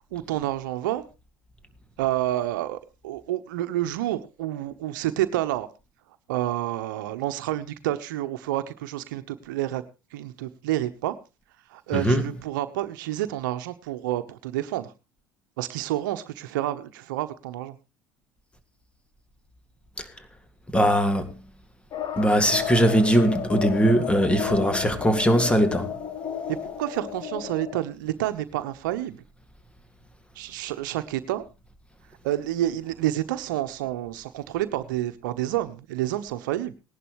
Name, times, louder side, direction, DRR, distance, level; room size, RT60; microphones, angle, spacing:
voice 1, 0.1-1.0 2.0-5.7 6.3-9.8 10.1-11.2 11.7-14.9 15.6-17.7 26.5-29.2 30.3-31.4 32.2-36.7, right 13 dB, 80° right, 1.0 m, -29 dB
voice 2, 20.7-21.3 22.2-25.9, right 1 dB, 10° left, 2.1 m, -20 dB
sound 1, 21.9-27.8, left 8 dB, 45° left, 1.6 m, -33 dB
18.5 x 11.0 x 3.1 m
hypercardioid pair, 70°, 10 cm